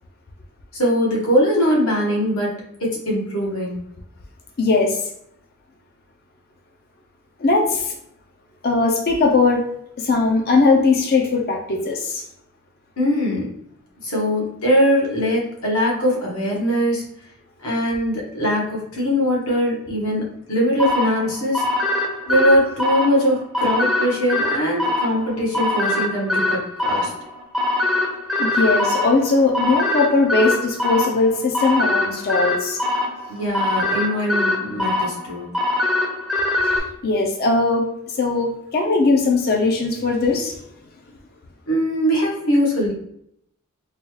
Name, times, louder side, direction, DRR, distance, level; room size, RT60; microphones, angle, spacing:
voice 1, 0.7-3.8 13.0-13.5 14.0-17.1 17.6-21.6 22.3-27.1 33.3-35.5 41.7-42.9, equal, 70° left, -3 dB, 1.3 m, -21 dB
voice 2, 4.6-5.0 7.4-7.9 8.6-9.6 10.0-12.2 28.4-32.8 37.0-37.9 38.2-40.6, left 3 dB, 45° left, 1 dB, 0.5 m, -19 dB
sound 1, 20.8-36.8, left 2 dB, ahead, 0.6 m, -23 dB
3.9 x 2.3 x 3.1 m, 0.72 s
head